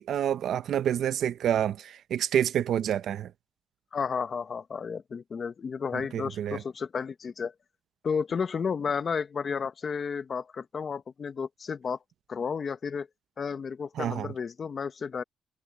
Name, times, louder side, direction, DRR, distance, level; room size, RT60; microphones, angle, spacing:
voice 1, 0.0-3.3 6.1-6.6 14.0-14.3, right 10 dB, 75° right, 0.6 m, -28 dB
voice 2, 3.9-7.5 8.0-12.0 12.3-13.1 13.4-15.2, left 6 dB, 40° left, 0.9 m, -32 dB
cardioid pair, 125°, 0 cm